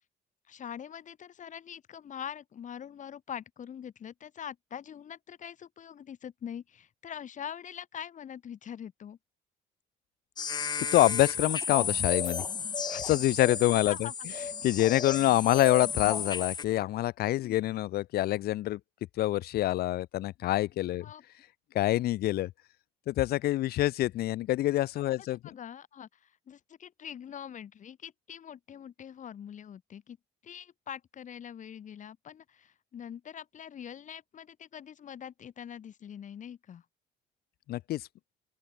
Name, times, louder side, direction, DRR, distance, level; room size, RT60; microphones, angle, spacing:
voice 1, 0.5-9.2 13.7-14.3 17.4-17.6 21.0-21.2 25.4-30.2 30.4-36.8, left 9 dB, 45° left, 3.7 m, -43 dB
sound 1, 10.4-16.6, left 6 dB, 25° left, 0.6 m, -33 dB
voice 2, 10.6-12.4 12.9-14.1 14.6-18.8 19.2-21.1 21.7-22.5 23.1-25.4 37.7-38.1, left 15 dB, 65° left, 0.8 m, -26 dB
open air
cardioid pair, 110°, 17 cm